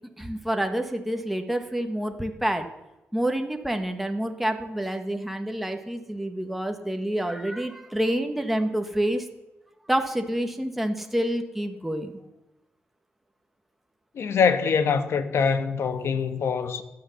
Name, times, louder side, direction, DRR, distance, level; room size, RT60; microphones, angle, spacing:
voice 1, 0.2-2.7 3.1-9.3 9.9-12.1, right 1 dB, 5° right, 1.2 m, -28 dB
voice 2, 14.1-16.8, left 6 dB, 65° left, 1.2 m, -24 dB
15.5 x 10.0 x 7.0 m
wide cardioid pair, 135°, 5 cm